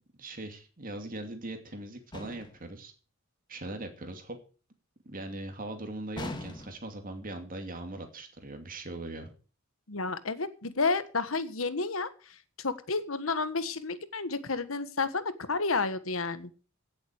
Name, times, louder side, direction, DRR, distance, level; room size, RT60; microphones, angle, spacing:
voice 1, 0.2-2.9 3.5-4.4 5.0-9.3, right 2 dB, 45° right, 6 dB, 2.6 m, -40 dB
sound 1, 2.1-2.7 6.2-7.0, left 1 dB, 20° left, 2.5 m, -40 dB
voice 2, 9.9-16.5, left 3 dB, 80° left, 13 dB, 1.4 m, -31 dB
16.5 x 7.8 x 6.5 m, 0.37 s
head